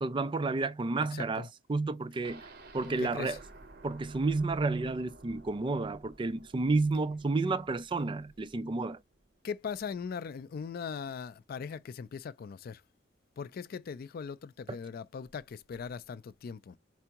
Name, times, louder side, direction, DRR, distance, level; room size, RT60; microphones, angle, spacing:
voice 1, 0.0-2.4 2.7-3.4 3.8-9.0, right 3 dB, 25° right, 0.4 m, -31 dB
voice 2, 1.1-1.5 2.8-3.4 9.4-12.8 13.4-16.8, left 6 dB, 50° left, 0.3 m, -40 dB
sound 1, 2.2-10.1 10.5-10.6 10.9-11.0, right 2 dB, 55° right, 0.9 m, -54 dB
4.6 x 3.4 x 2.8 m
head